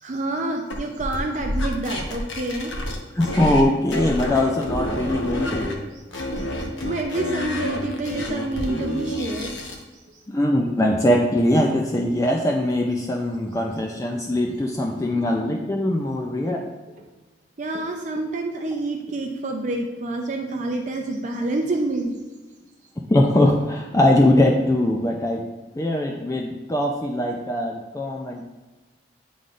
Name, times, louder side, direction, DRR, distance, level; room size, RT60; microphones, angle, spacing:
voice 1, 0.0-2.7 5.9-9.5 10.1-10.2 17.6-22.2, right 2 dB, 40° right, 2 dB, 0.5 m, -28 dB
sound 1, 0.7-3.7 3.9-5.7 6.1-9.8, left 1 dB, 90° left, 1.0 m, -29 dB
voice 2, 3.2-5.7 10.3-16.7 23.1-25.4 25.7-28.4, left 1 dB, 15° left, 1 dB, 0.4 m, -21 dB
10.0 x 3.9 x 2.4 m, 1.2 s
head